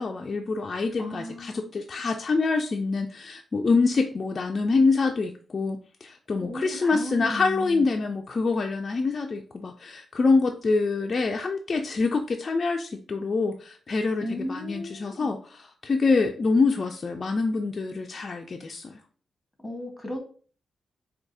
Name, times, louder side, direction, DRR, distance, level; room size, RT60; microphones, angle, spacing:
voice 1, 0.0-19.0, left 4 dB, 50° left, 3 dB, 0.3 m, -26 dB
voice 2, 1.0-1.7 6.4-7.8 14.2-15.3 19.6-20.2, left 1 dB, 15° left, 3 dB, 1.2 m, -35 dB
4.6 x 2.3 x 2.6 m, 0.42 s
cardioid pair, 65°, 0 cm